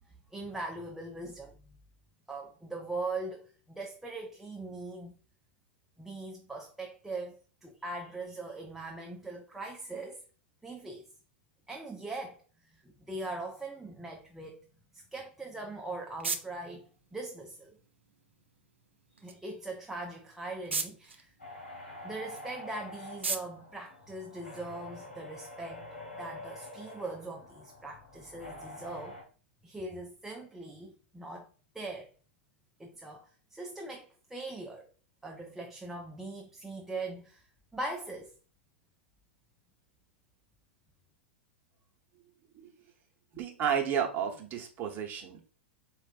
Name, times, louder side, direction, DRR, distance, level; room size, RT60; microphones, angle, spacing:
voice 1, 0.3-1.6 2.3-5.2 6.0-10.2 10.6-11.1 11.7-12.4 12.7-14.7 14.9-17.8 19.2-21.3 22.0-25.9 26.2-29.2 29.6-31.5 31.7-32.1 32.8-34.9 35.2-37.5 37.7-38.3, right 2 dB, 5° right, 0.5 m, -41 dB
sound 1, 15.4-24.9, right 4 dB, 85° right, 0.5 m, -42 dB
sound 2, 21.4-29.2, left 2 dB, 85° left, 1.3 m, -47 dB
voice 2, 43.3-45.4, right 8 dB, 30° right, 0.9 m, -32 dB
4.4 x 2.4 x 2.5 m
figure-of-eight pair, 100°, 6 cm